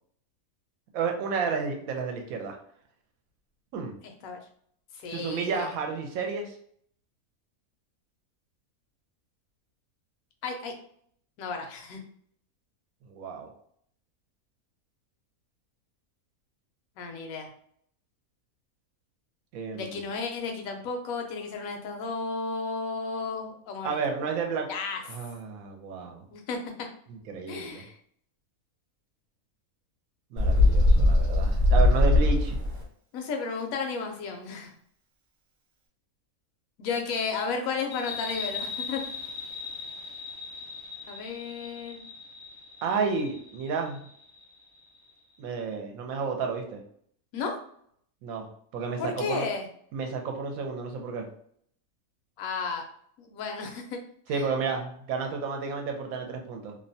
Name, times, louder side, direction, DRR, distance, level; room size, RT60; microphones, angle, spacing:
voice 1, 0.9-2.6 3.7-4.0 5.1-6.6 13.0-13.5 19.5-20.0 23.8-24.7 25.1-26.2 27.1-27.9 30.3-32.6 42.8-44.0 45.4-46.8 48.2-49.5 49.9-51.3 54.3-56.8, right 5 dB, 75° right, 3 dB, 1.0 m, -31 dB
voice 2, 4.0-4.4 4.9-5.7 10.4-10.7 11.4-12.0 17.0-17.5 19.7-24.0 24.7-25.0 26.3-26.9 27.5-28.0 33.1-34.8 36.8-39.0 41.1-42.0 47.3-47.6 49.0-49.7 52.4-52.9 53.2-54.0 54.3-54.4, left 4 dB, 75° left, 4 dB, 1.0 m, -33 dB
Bird, 30.4-32.8, left 2 dB, 50° right, 0.7 m, -20 dB
sound 1, 37.9-45.1, left 5 dB, 40° left, 0.4 m, -40 dB
2.7 x 2.1 x 2.6 m, 0.64 s
omnidirectional pair, 1.6 m